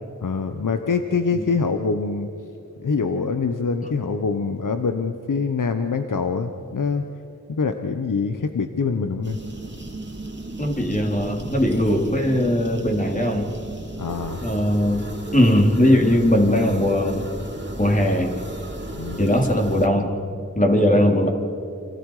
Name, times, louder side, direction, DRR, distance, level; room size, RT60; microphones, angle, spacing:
voice 1, 0.2-2.3 2.8-7.0 7.5-9.4 14.0-14.4 18.9-19.2, left 4 dB, 80° left, 7 dB, 1.1 m, -24 dB
sound 1, 9.2-19.9, right 1 dB, 35° right, 2.5 m, -35 dB
voice 2, 10.6-13.5 14.4-17.3 17.8-18.4 19.2-20.1 20.6-21.3, left 1 dB, 25° left, 1 dB, 3.8 m, -19 dB
29.5 x 26.5 x 5.0 m, 2.7 s
wide cardioid pair, 45°, 31 cm